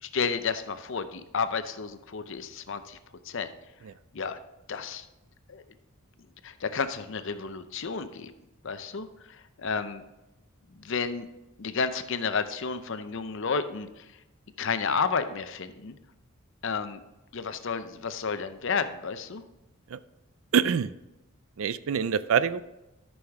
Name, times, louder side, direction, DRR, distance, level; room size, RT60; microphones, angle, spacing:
voice 1, 0.0-3.0 3.2-3.5 4.1-4.4 4.7-5.1 5.5-5.6 6.4-8.3 8.6-10.0 10.7-11.3 11.6-14.1 14.6-15.9 16.6-17.0 17.3-19.4, left 5 dB, 60° left, 10 dB, 0.6 m, -31 dB
voice 2, 20.5-20.9 21.6-22.6, right 7 dB, 65° right, 15 dB, 0.4 m, -25 dB
13.0 x 6.3 x 3.6 m, 0.97 s
head